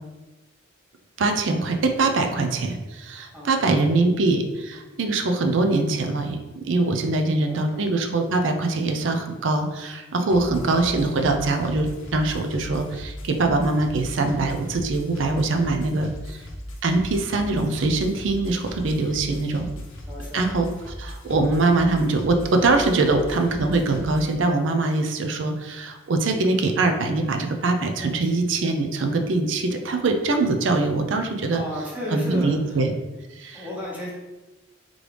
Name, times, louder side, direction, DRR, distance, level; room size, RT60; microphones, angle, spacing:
voice 1, 1.2-16.4 16.8-19.7 20.3-20.7 21.0-31.6 32.1-32.9 33.4-33.6, right 2 dB, 65° right, 5 dB, 0.5 m, -23 dB
voice 2, 3.3-4.1 6.9-7.8 10.4-11.1 19.3-19.5 20.1-20.5 28.0-28.4 31.5-32.8 33.5-34.1, equal, 10° right, -5 dB, 1.0 m, -36 dB
sound 1, 10.3-24.3, equal, 80° left, 0.7 m, -38 dB
3.8 x 3.1 x 3.3 m, 1.1 s
head